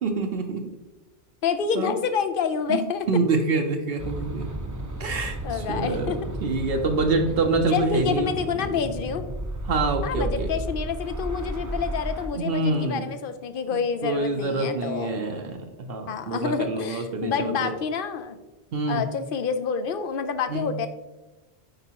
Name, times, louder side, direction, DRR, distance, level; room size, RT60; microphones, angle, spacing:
voice 1, 0.0-0.7 1.7-2.0 2.7-4.5 5.0-8.4 9.7-10.5 12.3-13.1 13.7-13.8 14.0-17.7 18.7-19.1 20.5-20.7, right 3 dB, 65° right, 4 dB, 0.9 m, -26 dB
voice 2, 1.4-3.0 5.4-6.2 7.7-9.2 10.0-15.3 16.1-18.4 18.9-20.9, left 6 dB, 60° left, 10 dB, 0.7 m, -28 dB
sound 1, 4.0-12.3, right 1 dB, 20° right, 0.6 m, -33 dB
9.0 x 4.5 x 2.9 m, 1.1 s
omnidirectional pair, 1.1 m